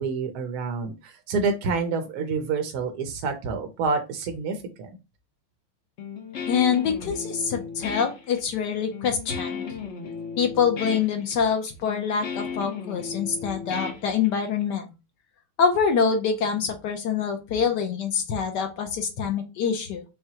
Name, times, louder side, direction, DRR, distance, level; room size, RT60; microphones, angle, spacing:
voice 1, 0.0-4.9, right 4 dB, 70° right, 5 dB, 0.9 m, -28 dB
Guitar, 6.0-14.6, left 6 dB, 85° left, 0.6 m, -35 dB
voice 2, 6.5-9.8 10.4-14.9 15.6-20.0, left 6 dB, 70° left, 5 dB, 1.1 m, -25 dB
5.6 x 2.2 x 2.8 m, 0.27 s
omnidirectional pair, 2.3 m